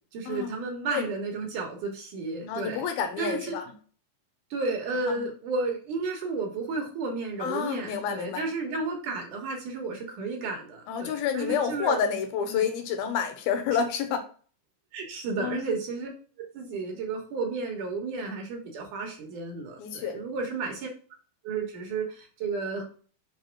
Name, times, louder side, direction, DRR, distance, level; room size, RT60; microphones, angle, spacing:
voice 1, 0.1-2.8 3.2-3.6 4.5-12.0 12.5-12.7 14.9-16.1 16.4-20.9 21.4-22.8, right 3 dB, 65° right, 2 dB, 2.6 m, -32 dB
voice 2, 2.5-3.7 5.1-5.2 7.4-8.5 10.9-14.2 15.4-15.6 19.8-20.2, left 7 dB, 75° left, 7 dB, 2.8 m, -29 dB
6.1 x 4.1 x 5.9 m, 0.42 s
omnidirectional pair, 4.4 m